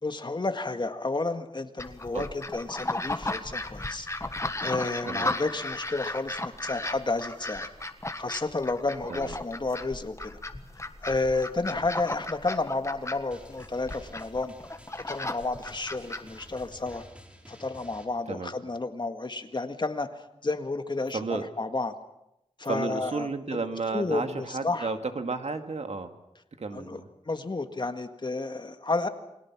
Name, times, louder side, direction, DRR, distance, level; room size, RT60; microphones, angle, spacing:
voice 1, 0.0-4.1 4.6-7.7 8.2-10.4 11.0-14.5 15.1-17.0 17.5-21.9 22.6-23.6 23.9-24.9 26.7-27.0 27.3-29.1, left 3 dB, 40° left, 7 dB, 1.9 m, -31 dB
sound 1, 1.8-17.0, left 2 dB, 25° left, 1.5 m, -35 dB
Drum, 13.3-18.1, equal, 10° right, 3.7 m, -52 dB
voice 2, 21.1-21.5 22.7-26.2 26.6-27.1, right 4 dB, 65° right, 7 dB, 2.1 m, -32 dB
29.0 x 21.5 x 6.1 m, 0.85 s
wide cardioid pair, 95°, 12 cm